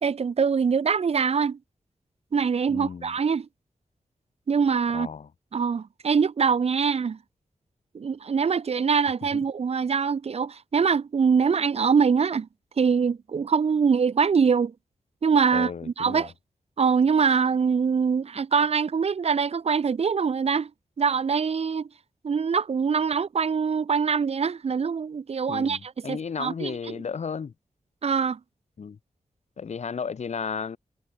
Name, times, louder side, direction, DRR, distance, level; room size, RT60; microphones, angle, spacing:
voice 1, 0.0-1.6 2.3-3.5 4.5-5.1 5.5-7.2 7.9-12.5 12.8-14.7 15.2-16.3 16.8-20.7 21.0-21.9 22.2-26.9 28.0-28.4, right 6 dB, 55° right, 1.2 m, -23 dB
voice 2, 2.7-3.1 4.9-5.3 9.3-9.4 15.5-16.3 25.5-27.5 28.8-29.0 29.6-30.8, left 6 dB, 65° left, 3.5 m, -34 dB
wide cardioid pair, 160°, 12 cm